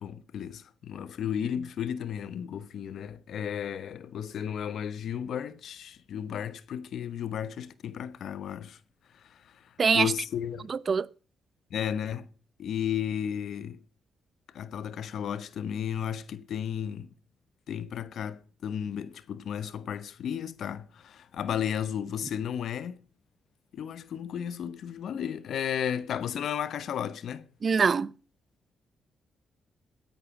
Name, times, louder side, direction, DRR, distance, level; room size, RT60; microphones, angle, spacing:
voice 1, 0.0-8.8 9.3-9.4 9.9-10.7 11.7-12.3 12.6-13.8 14.5-17.1 17.7-23.0 23.7-27.5, left 9 dB, 70° left, 1.0 m, -34 dB
voice 2, 9.8-10.1 10.7-11.1 27.6-28.1, right 5 dB, 45° right, 0.6 m, -23 dB
17.5 x 9.8 x 6.0 m
cardioid pair, 65°, 0 cm